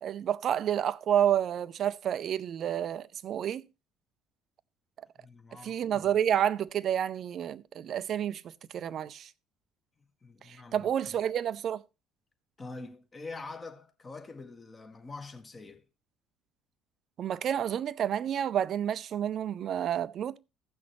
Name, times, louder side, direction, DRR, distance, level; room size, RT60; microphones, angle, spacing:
voice 1, 0.0-3.6 5.6-8.4 8.7-9.3 10.5-11.8 17.2-20.4, right 9 dB, 50° right, 0.5 m, -29 dB
voice 2, 5.2-6.1 10.2-11.2 12.6-15.8, left 3 dB, 30° left, 1.7 m, -45 dB
16.0 x 6.2 x 3.1 m
figure-of-eight pair, 55°, 0 cm